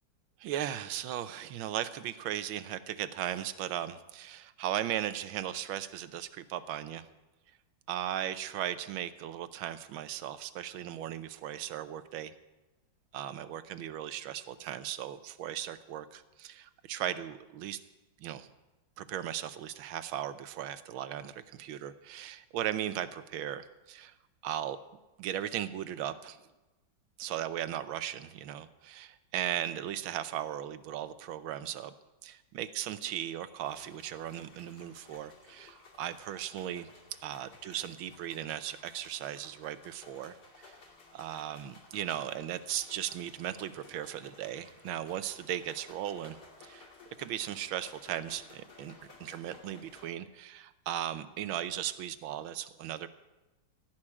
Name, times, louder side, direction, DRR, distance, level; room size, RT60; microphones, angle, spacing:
voice 1, 0.4-7.1 7.9-12.3 13.1-17.8 18.2-18.5 19.0-24.1 24.4-24.8 25.2-26.4 27.2-31.9 32.2-36.9 37.2-40.8 41.1-46.4 46.6-46.9 47.2-48.9 49.2-53.1, right 11 dB, 90° right, 13 dB, 1.5 m, -37 dB
sound 1, 33.6-50.1, left 3 dB, 55° left, 3.1 m, -56 dB
16.0 x 6.1 x 9.8 m, 1.1 s
omnidirectional pair, 2.2 m